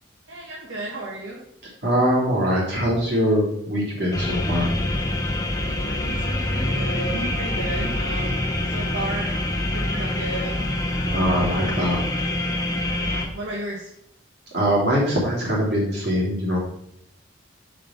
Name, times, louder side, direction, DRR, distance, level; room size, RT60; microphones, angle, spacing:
voice 1, 0.3-1.4 5.8-8.4 8.6-11.4 13.0-13.9, right 2 dB, 80° right, -6 dB, 1.6 m, -34 dB
voice 2, 1.8-4.7 11.1-12.0 14.5-16.6, equal, 60° right, -5 dB, 2.8 m, -22 dB
sound 1, 4.1-13.3, left 1 dB, 20° left, 0.9 m, -25 dB
5.7 x 5.2 x 5.5 m, 0.74 s
head